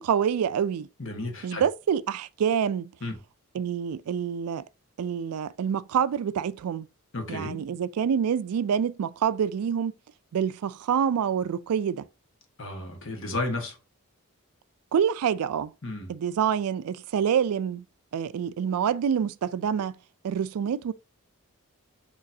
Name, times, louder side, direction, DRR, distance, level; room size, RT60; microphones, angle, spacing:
voice 1, 0.0-0.9 1.4-2.9 3.5-4.6 5.0-6.9 7.3-9.9 10.3-12.0 14.9-15.7 16.1-17.8 18.1-20.0 20.2-20.9, right 8 dB, 85° right, 0.3 m, -26 dB
voice 2, 1.0-1.6 3.0-3.2 7.1-7.6 12.6-13.8 15.8-16.1, left 2 dB, 60° left, 1.3 m, -33 dB
6.4 x 3.1 x 2.7 m
head